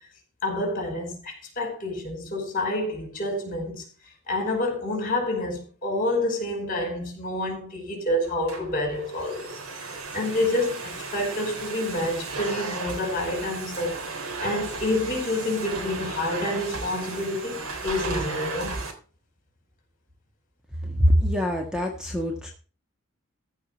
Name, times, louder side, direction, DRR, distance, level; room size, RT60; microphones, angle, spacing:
voice 1, 0.4-3.8 4.3-9.5 9.9-13.9 14.4-18.8, left 1 dB, 40° left, 5.1 m, -28 dB
Domestic sounds home sounds, 8.2-18.9, right 3 dB, 85° right, 3.1 m, -34 dB
voice 2, 20.8-22.5, equal, 5° right, 1.6 m, -23 dB
14.5 x 5.0 x 7.1 m
head